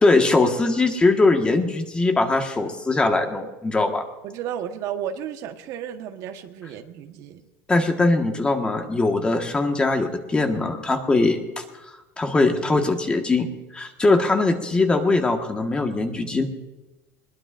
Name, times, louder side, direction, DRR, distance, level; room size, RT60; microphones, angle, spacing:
voice 1, 0.0-4.0 7.7-11.6 12.2-13.5 13.7-16.5, left 3 dB, 15° left, 4 dB, 1.5 m, -21 dB
voice 2, 4.2-7.4, right 9 dB, 50° right, 6 dB, 1.2 m, -33 dB
21.0 x 20.5 x 2.5 m, 1.1 s
supercardioid pair, 140°, 7 cm